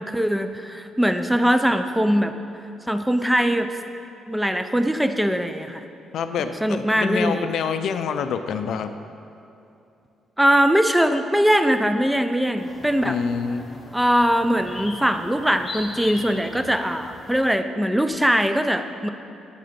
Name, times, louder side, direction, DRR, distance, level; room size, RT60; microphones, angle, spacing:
voice 1, 0.0-2.3 2.9-3.7 4.3-5.8 6.4-7.5 10.4-13.2 13.9-19.1, equal, 5° right, 8 dB, 0.4 m, -21 dB
voice 2, 6.1-8.9 13.0-13.7, left 6 dB, 70° left, 9 dB, 0.4 m, -26 dB
sound 1, 12.6-17.5, left 2 dB, 30° left, 0.8 m, -40 dB
8.9 x 3.8 x 5.1 m, 2.7 s
cardioid pair, 90°, 0 cm